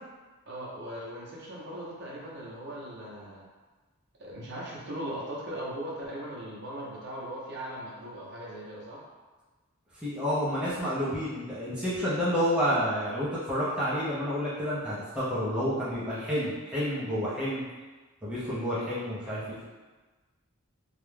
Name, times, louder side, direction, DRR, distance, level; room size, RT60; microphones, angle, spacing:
voice 1, 0.5-3.4 4.2-9.0, right 1 dB, 50° right, -5 dB, 0.6 m, -39 dB
voice 2, 9.9-17.7 18.2-19.6, equal, 5° right, -10 dB, 0.5 m, -29 dB
2.3 x 2.1 x 3.2 m, 1.3 s
head